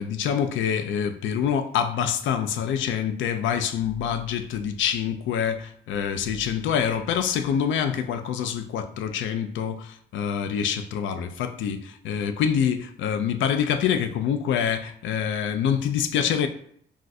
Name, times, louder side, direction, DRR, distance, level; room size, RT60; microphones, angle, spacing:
voice 1, 0.0-16.5, left 8 dB, 75° left, 0.4 m, -26 dB
2.4 x 2.4 x 4.0 m
cardioid pair, 90°, 20 cm